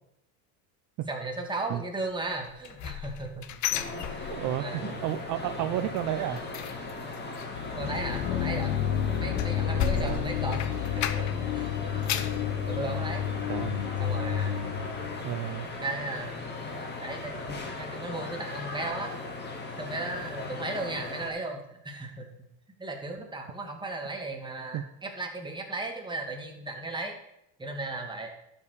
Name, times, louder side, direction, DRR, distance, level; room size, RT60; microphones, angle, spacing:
voice 1, 1.1-3.4 3.8-4.3 4.6-5.0 5.6-5.8 7.7-10.6 10.9-11.2 11.5-11.7 12.5-13.2 14.0-14.8 15.8-16.4 17.0-19.1 19.8-22.3 22.8-27.1 27.6-28.3, right 2 dB, 10° right, 1 dB, 2.3 m, -36 dB
sound 1, 2.4-4.8 5.1-5.4 5.7-11.5 11.8-12.4 12.9-13.0 13.5-13.6, left 10 dB, 45° left, 0.9 m, -35 dB
sound 2, 3.7-21.3, left 3 dB, 25° left, 2.3 m, -38 dB
voice 2, 4.3-6.4 9.9-10.3 13.5-13.8 15.2-15.7 24.7-24.8, right 12 dB, 45° right, 8 dB, 0.7 m, -32 dB
sound 3, 7.5-15.4, left 9 dB, 70° left, 0.9 m, -31 dB
11.5 x 5.5 x 6.7 m, 0.79 s
supercardioid pair, 115°, 42 cm